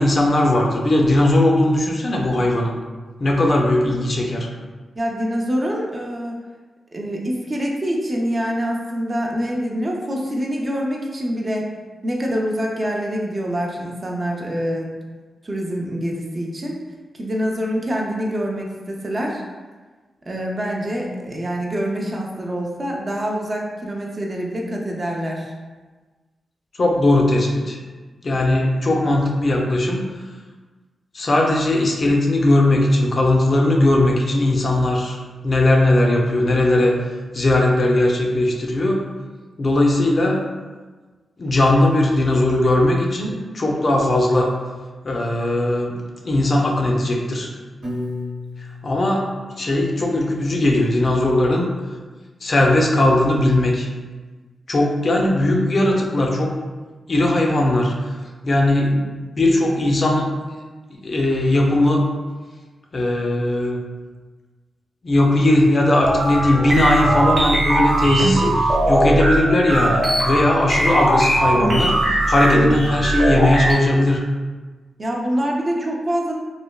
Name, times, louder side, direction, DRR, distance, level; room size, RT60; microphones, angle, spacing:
voice 1, 0.0-2.8 3.2-4.5 26.8-27.8 28.2-30.1 31.1-36.9 37.3-39.0 39.6-40.4 41.4-44.5 45.0-46.0 46.2-47.5 48.8-49.2 49.6-51.7 52.4-53.9 54.7-56.5 57.1-57.9 58.4-60.3 60.9-62.0 62.9-63.8 65.0-74.2, left 1 dB, 50° left, 0 dB, 0.4 m, -18 dB
voice 2, 5.0-6.4 6.9-11.7 12.0-14.9 15.4-16.8 17.1-19.4 20.3-25.5 75.0-76.3, equal, 35° right, -1 dB, 0.4 m, -25 dB
Piano, 47.8-50.0, left 2 dB, 90° right, 1.0 m, -33 dB
sound 1, 66.0-73.7, right 1 dB, 55° right, 0.8 m, -19 dB
3.1 x 2.1 x 2.2 m, 1.3 s
cardioid pair, 85°, 0 cm